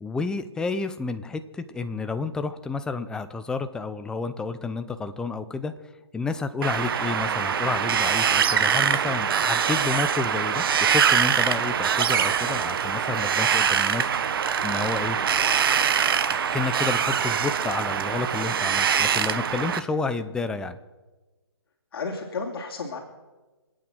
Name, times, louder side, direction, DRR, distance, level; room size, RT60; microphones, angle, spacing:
voice 1, 0.0-5.7 6.1-15.2 16.5-20.8, left 4 dB, 5° left, 10 dB, 0.6 m, -30 dB
Wind, 6.6-19.8, right 7 dB, 55° right, 1.1 m, -23 dB
voice 2, 21.9-23.0, left 4 dB, 60° left, 1 dB, 2.9 m, -32 dB
26.0 x 8.9 x 6.2 m, 1.2 s
hypercardioid pair, 145°, 14 cm